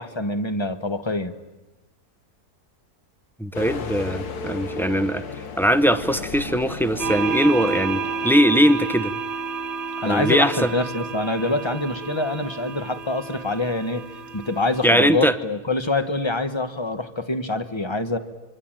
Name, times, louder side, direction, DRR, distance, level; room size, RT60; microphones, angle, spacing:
voice 1, 0.0-1.3 10.0-14.0 14.3-18.2, left 2 dB, 20° left, 10 dB, 1.1 m, -25 dB
voice 2, 3.4-5.2 5.6-9.1 10.1-10.7 14.8-15.4, equal, ahead, 9 dB, 0.5 m, -20 dB
sound 1, 3.5-9.1, left 4 dB, 85° left, 1.9 m, -35 dB
sound 2, 7.0-15.2, right 5 dB, 45° right, 1.6 m, -31 dB
25.0 x 24.0 x 9.0 m, 1.0 s
omnidirectional pair, 1.6 m